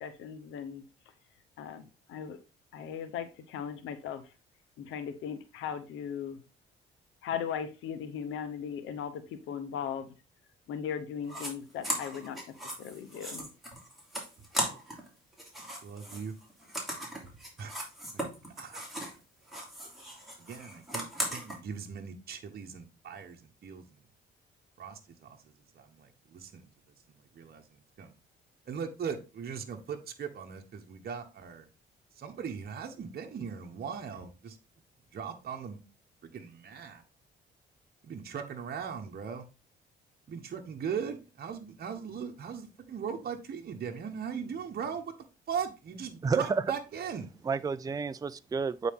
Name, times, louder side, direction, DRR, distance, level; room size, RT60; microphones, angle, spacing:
voice 1, 0.0-0.8 1.6-2.4 2.7-4.2 4.8-6.4 7.2-10.1 10.7-12.4 12.8-13.5, left 8 dB, 90° left, 1.0 m, -38 dB
sound 1, 11.3-11.5 11.8-15.1 15.3-19.2 19.5-21.6, right 1 dB, ahead, 3.0 m, -37 dB
voice 2, 15.8-16.3 17.6-17.8 18.1-18.2 18.6-18.8 20.4-21.0 21.3-23.8 24.8-25.4 25.7-26.7 27.3-27.6 28.0-28.1 28.7-31.7 32.2-34.6 35.1-35.8 36.2-37.0 38.0-39.5 40.3-45.1 45.5-47.3, right 7 dB, 50° right, 1.1 m, -39 dB
voice 3, 46.2-46.7 47.4-48.9, right 5 dB, 20° right, 0.4 m, -30 dB
8.4 x 4.1 x 3.6 m
cardioid pair, 90°, 20 cm